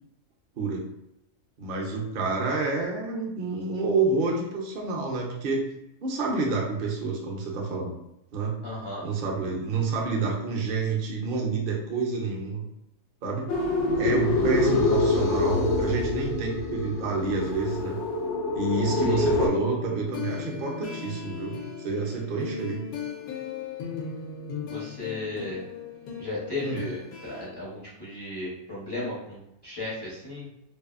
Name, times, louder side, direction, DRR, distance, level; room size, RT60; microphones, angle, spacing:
voice 1, 0.6-0.9 1.6-5.7 6.0-7.9 8.3-8.6 9.0-12.6 13.2-13.5 13.9-18.0 18.5-22.8 26.6-26.8, right 3 dB, 60° right, -1 dB, 0.6 m, -28 dB
voice 2, 8.6-9.1 18.9-19.3 24.6-25.6 26.2-30.5, left 2 dB, 35° left, -8 dB, 0.4 m, -35 dB
sound 1, 13.5-19.5, left 2 dB, 65° left, 0.7 m, -25 dB
sound 2, 18.7-27.5, left 4 dB, 80° left, 1.1 m, -37 dB
2.7 x 2.4 x 2.4 m, 0.86 s
omnidirectional pair, 1.6 m